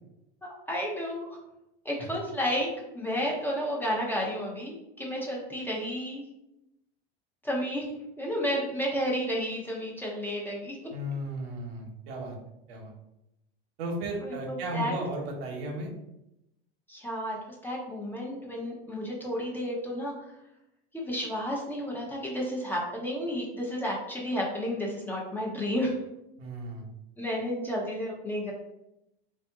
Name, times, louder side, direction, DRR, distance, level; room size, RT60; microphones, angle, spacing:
voice 1, 0.7-1.3 1.8-2.7 2.9-6.2 7.4-7.9 8.2-10.8 14.2-14.9 16.9-17.4 17.6-20.1 20.9-26.0 27.2-28.5, equal, 5° left, -3 dB, 0.7 m, -31 dB
voice 2, 10.9-12.4 12.7-12.9 13.8-15.9 26.4-26.9, right 1 dB, 80° right, 2 dB, 1.0 m, -35 dB
3.4 x 2.6 x 3.5 m, 0.87 s
supercardioid pair, 125°, 30 cm